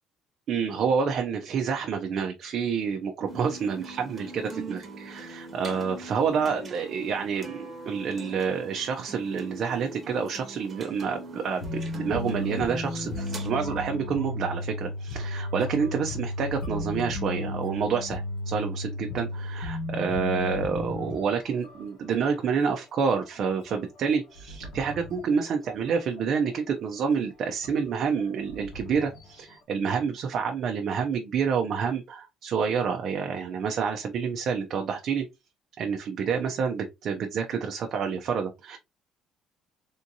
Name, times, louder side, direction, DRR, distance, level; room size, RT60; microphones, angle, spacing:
voice 1, 0.5-35.3 35.8-38.8, right 6 dB, 45° right, 0.4 m, -28 dB
sound 1, 3.3-13.5, right 2 dB, 25° right, 0.8 m, -42 dB
sound 2, 11.6-21.8 22.1-22.3 22.6-22.7 23.2-25.8 26.2-26.7 27.1-27.2 27.6-29.5, left 2 dB, 70° left, 1.0 m, -34 dB
3.5 x 2.6 x 2.7 m
cardioid pair, 160°, 0 cm